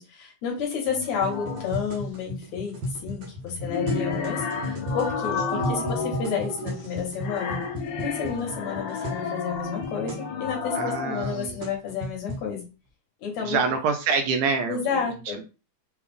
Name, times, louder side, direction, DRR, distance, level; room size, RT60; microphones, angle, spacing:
voice 1, 0.0-2.7 3.0-7.6 8.0-12.7 13.2-13.6 14.7-15.4, left 6 dB, 65° left, 0 dB, 2.1 m, -31 dB
sound 1, 0.9-1.8 3.4-11.5, left 5 dB, 85° left, 1.4 m, -32 dB
sound 2, 1.1-9.3 9.5-9.6 9.8-10.2 10.9-12.5, equal, 65° right, 1.4 m, -35 dB
voice 2, 5.5-5.9 10.8-11.6 13.4-14.8, right 5 dB, 80° right, 5 dB, 1.9 m, -26 dB
6.0 x 2.3 x 3.4 m, 0.31 s
omnidirectional pair, 3.9 m